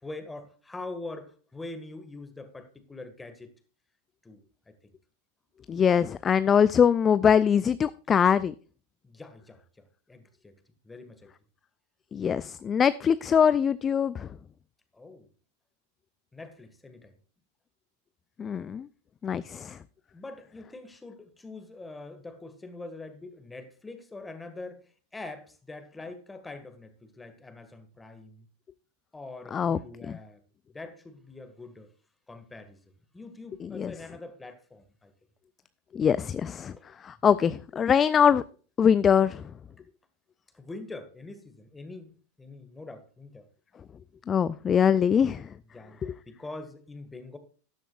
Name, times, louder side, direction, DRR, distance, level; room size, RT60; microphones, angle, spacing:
voice 1, 0.0-3.5 4.2-4.4 4.7-4.8 9.0-10.6 10.8-11.3 14.9-15.3 16.3-17.1 20.1-24.8 25.1-28.5 29.1-30.4 30.7-31.9 32.3-32.8 33.1-35.1 36.8-36.9 40.5-43.5 45.7-47.4, left 2 dB, 10° left, 1.8 m, -44 dB
voice 2, 5.7-8.5 12.1-14.3 18.4-18.9 19.2-19.8 29.5-29.8 33.6-33.9 35.9-36.7 37.0-38.4 38.8-39.4 44.3-45.5 46.0-46.1, left 7 dB, 25° left, 0.4 m, -23 dB
13.0 x 11.0 x 2.4 m
figure-of-eight pair, 90°, 0 cm